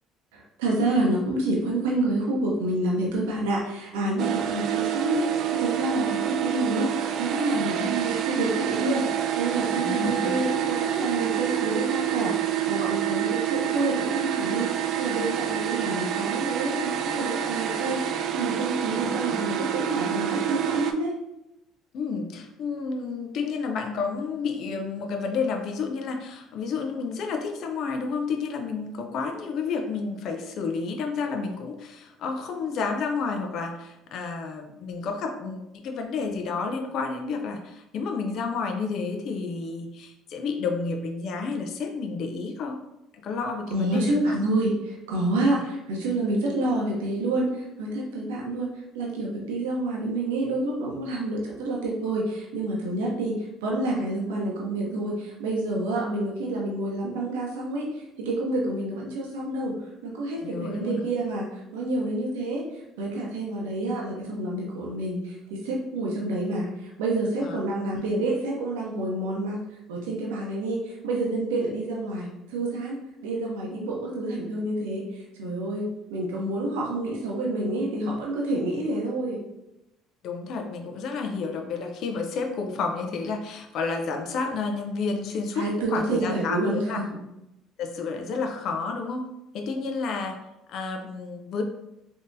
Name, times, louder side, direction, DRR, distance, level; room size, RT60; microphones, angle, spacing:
voice 1, 0.3-21.1 43.7-48.7 48.9-59.8 60.0-62.7 63.0-69.6 69.9-79.4 85.6-87.1, right 2 dB, 90° right, -2 dB, 0.7 m, -28 dB
sound 1, 4.2-20.9, right 10 dB, 60° right, 0.3 m, -27 dB
voice 2, 9.7-10.5 18.9-19.3 21.9-42.8 43.1-44.4 60.4-61.1 67.4-67.6 67.9-68.0 80.2-87.0 87.8-89.3 89.5-90.4 90.7-91.6, left 4 dB, 60° left, 4 dB, 0.5 m, -30 dB
3.5 x 2.7 x 2.6 m, 0.89 s
supercardioid pair, 80°, 0 cm